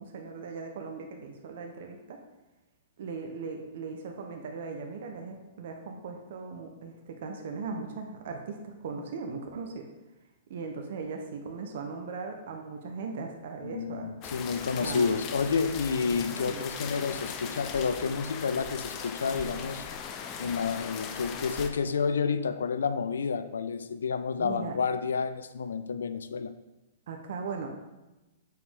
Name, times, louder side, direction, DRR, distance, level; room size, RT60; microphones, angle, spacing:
voice 1, 0.0-2.2 3.0-9.8 10.5-14.1 14.8-15.1 16.1-16.6 24.4-24.8 27.1-27.7, right 4 dB, 65° right, 3 dB, 0.9 m, -38 dB
voice 2, 13.6-19.8 20.4-26.5, left 5 dB, 80° left, 12 dB, 0.5 m, -30 dB
sound 1, 14.2-21.7, left 6 dB, 35° left, 0.7 m, -39 dB
7.7 x 4.9 x 3.6 m, 1.0 s
hypercardioid pair, 120°, 0 cm